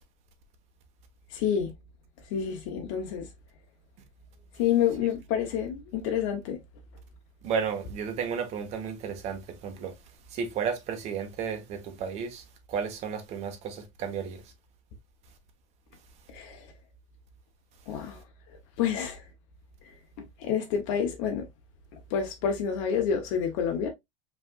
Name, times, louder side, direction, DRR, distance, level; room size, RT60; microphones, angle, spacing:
voice 1, 1.3-1.7 2.3-3.3 4.5-6.6 16.3-16.7 17.9-18.2 18.8-19.2 20.4-21.5 22.1-23.9, left 8 dB, 65° left, 1.0 m, -28 dB
voice 2, 7.4-9.9 10.3-14.5, right 6 dB, 40° right, 1.2 m, -33 dB
5.2 x 3.4 x 2.4 m
supercardioid pair, 155°, 17 cm